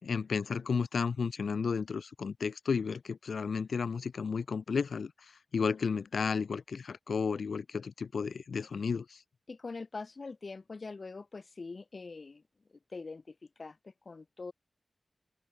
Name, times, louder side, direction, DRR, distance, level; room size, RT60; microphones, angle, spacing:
voice 1, 0.0-5.1 5.5-9.2, left 5 dB, 80° left, 4.1 m, -33 dB
voice 2, 9.5-12.4 12.9-14.5, left 3 dB, 50° left, 2.0 m, -43 dB
open air
wide cardioid pair, 100°, 0 cm